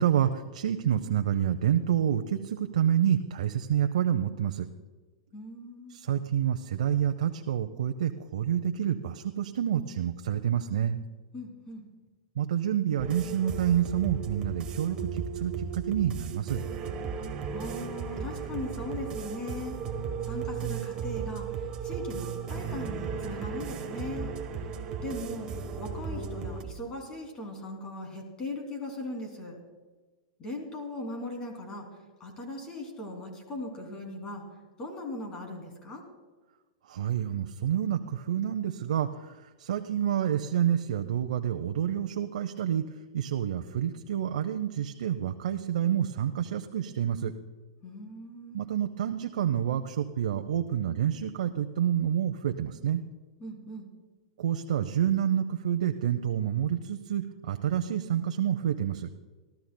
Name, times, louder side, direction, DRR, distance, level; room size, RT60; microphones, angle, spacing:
voice 1, 0.0-4.7 5.9-11.0 12.4-16.6 36.9-42.8 43.1-47.3 48.5-53.0 54.4-59.1, right 10 dB, 75° right, 7 dB, 0.7 m, -28 dB
voice 2, 5.3-6.0 11.3-11.8 17.5-19.8 20.2-24.3 25.0-25.5 25.8-29.6 30.4-31.9 32.2-34.4 34.8-36.0 47.8-48.6 53.4-53.9, left 1 dB, 20° left, 2 dB, 2.7 m, -39 dB
sound 1, 13.0-26.6, right 6 dB, 20° right, 1.1 m, -35 dB
28.0 x 13.0 x 2.2 m, 1.3 s
supercardioid pair, 170°, 4 cm